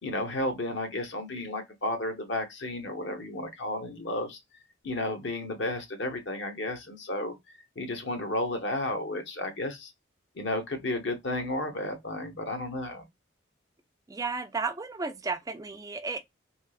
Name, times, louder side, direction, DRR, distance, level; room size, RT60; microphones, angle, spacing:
voice 1, 0.0-4.4 4.8-7.3 7.8-9.9 10.4-13.0, left 1 dB, 65° left, 0.9 m, -32 dB
voice 2, 14.1-16.2, right 4 dB, 15° right, 0.3 m, -33 dB
3.5 x 2.7 x 2.4 m
head